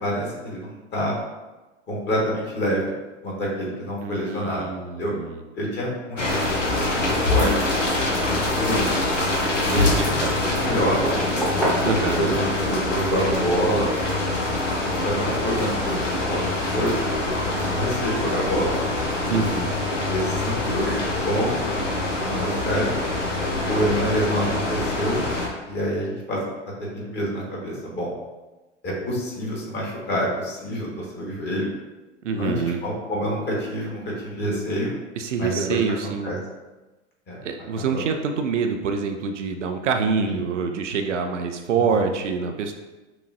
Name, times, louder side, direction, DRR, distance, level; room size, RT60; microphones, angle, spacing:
voice 1, 0.0-1.1 1.9-2.8 3.2-4.7 5.0-5.1 5.6-7.6 8.3-8.9 9.7-11.0 12.1-13.9 14.8-18.9 20.0-22.9 23.7-25.2 25.7-26.4 26.9-28.1 28.8-31.7 32.3-34.9 35.4-36.4 37.3-37.4 37.7-38.0 40.3-40.4 41.7-41.9, equal, 30° left, -3 dB, 1.4 m, -27 dB
voice 2, 4.0-5.4 9.6-9.9 10.2-10.4 11.8-12.4 19.3-19.7 32.2-32.8 35.2-36.3 37.4-42.7, right 5 dB, 80° right, 5 dB, 0.5 m, -26 dB
sound 1, 6.2-25.5, left 2 dB, 85° left, 0.9 m, -25 dB
sound 2, 11.0-12.8 13.3-17.9, equal, ahead, 0.9 m, -32 dB
5.9 x 2.3 x 2.5 m, 1.1 s
figure-of-eight pair, 85°, 36 cm